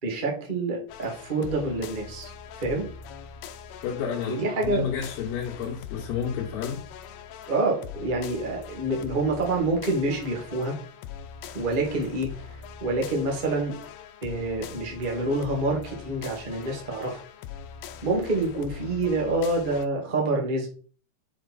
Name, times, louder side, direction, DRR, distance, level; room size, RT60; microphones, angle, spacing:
voice 1, 0.0-2.3 2.6-2.9 4.2-4.9 7.5-10.7 11.5-13.7 14.2-17.2 18.0-20.7, right 2 dB, 80° right, -1 dB, 0.4 m, -27 dB
sound 1, 0.9-19.9, left 7 dB, 80° left, 2.7 m, -42 dB
voice 2, 3.8-6.8, left 7 dB, 65° left, -4 dB, 2.7 m, -31 dB
7.3 x 4.5 x 4.2 m, 0.40 s
omnidirectional pair, 4.8 m